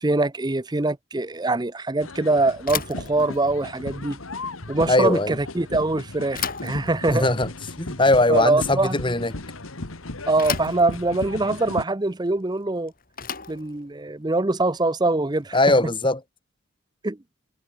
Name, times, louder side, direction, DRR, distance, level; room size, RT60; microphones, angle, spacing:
voice 1, 0.0-4.2 4.7-7.3 8.3-9.1 10.3-12.9 13.5-15.6 17.0-17.2, right 2 dB, 20° right, 0.7 m, -23 dB
sound 1, 2.0-11.8, left 2 dB, 80° left, 2.2 m, -36 dB
Bicycle / Thump thud, 2.6-15.7, left 8 dB, 45° left, 6.2 m, -38 dB
voice 2, 4.9-5.4 7.1-7.5 7.8-9.3 15.5-16.2, left 2 dB, 25° left, 2.5 m, -20 dB
head